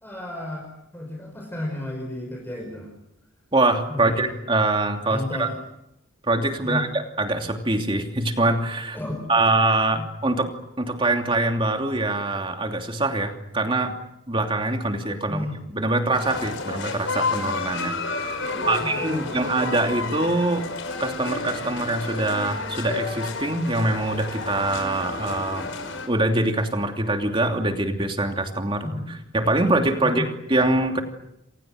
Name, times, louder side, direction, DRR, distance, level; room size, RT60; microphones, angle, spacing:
voice 1, 0.0-2.9 3.9-4.3 5.1-5.6 6.6-6.9 8.9-9.5 9.9-10.1 15.3-15.6 18.4-19.4 28.8-29.1 30.0-30.3, left 1 dB, 10° left, 1 dB, 5.5 m, -33 dB
voice 2, 3.5-5.5 6.2-9.0 9.3-10.5 10.8-13.9 14.3-20.7 21.0-25.7 26.1-28.9 29.3-31.0, right 2 dB, 25° right, 4 dB, 3.0 m, -24 dB
sound 1, 16.1-26.1, left 3 dB, 65° left, 5.8 m, -31 dB
28.5 x 26.0 x 6.5 m, 0.81 s
head